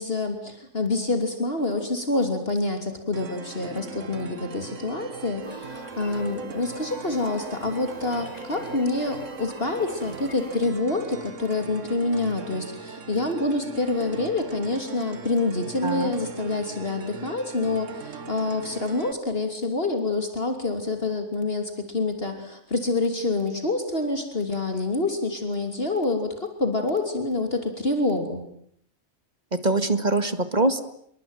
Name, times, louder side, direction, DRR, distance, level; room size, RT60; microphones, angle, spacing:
voice 1, 0.0-28.4, left 2 dB, 50° left, 6 dB, 3.3 m, -27 dB
sound 1, 3.1-19.1, right 5 dB, 85° right, 1.7 m, -40 dB
sound 2, 5.4-10.7, left 1 dB, 35° left, 2.6 m, -42 dB
voice 2, 29.5-30.9, right 2 dB, 35° right, 11 dB, 2.1 m, -23 dB
28.5 x 23.0 x 9.2 m, 0.69 s
omnidirectional pair, 1.3 m